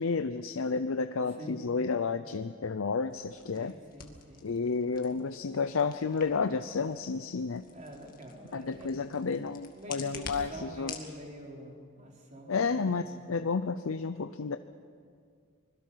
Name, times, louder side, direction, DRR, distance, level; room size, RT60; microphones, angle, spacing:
voice 1, 0.0-3.7 4.4-7.6 8.5-10.9 12.5-14.6, left 4 dB, 90° left, 10 dB, 0.6 m, -31 dB
sound 1, 3.1-11.1, left 6 dB, 45° left, 2.0 m, -48 dB
voice 2, 3.5-4.5 7.7-9.1 9.7-10.2 10.5-13.0, right 1 dB, 35° right, -1 dB, 3.9 m, -46 dB
25.5 x 21.5 x 5.7 m, 2.2 s
head